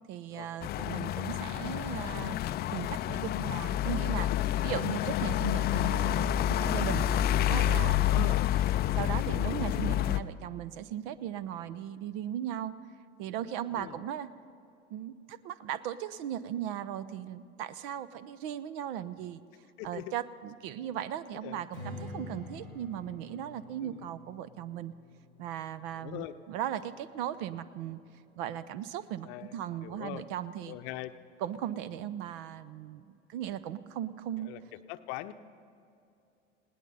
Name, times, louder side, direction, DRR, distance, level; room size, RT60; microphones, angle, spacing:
voice 1, 0.1-2.4 2.7-4.3 4.6-6.3 6.6-7.1 7.5-8.4 9.0-12.7 13.2-14.3 14.9-19.4 19.8-24.9 25.4-28.0 28.4-30.8 31.4-34.5, right 10 dB, 50° right, 16 dB, 0.7 m, -37 dB
sound 1, 0.6-10.2, left 12 dB, 30° left, 0.4 m, -28 dB
voice 2, 4.1-4.7 8.1-8.5 13.7-14.0 19.8-20.1 21.3-21.6 23.8-24.1 25.9-26.3 29.2-29.5 29.8-30.2 30.7-31.1 34.4-34.6 34.9-35.3, left 15 dB, 50° left, 11 dB, 0.8 m, -42 dB
Strum, 21.7-26.9, left 2 dB, 75° right, 4.8 m, -47 dB
20.0 x 18.0 x 4.1 m, 2.6 s
figure-of-eight pair, 75°, 36 cm